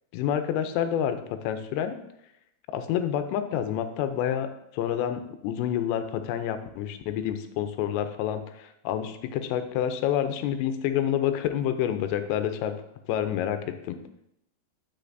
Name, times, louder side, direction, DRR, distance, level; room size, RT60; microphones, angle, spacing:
voice 1, 0.1-2.0 2.7-12.7 13.1-14.0, left 10 dB, 80° left, 9 dB, 2.7 m, -28 dB
10.0 x 6.4 x 2.6 m, 0.79 s
omnidirectional pair, 5.3 m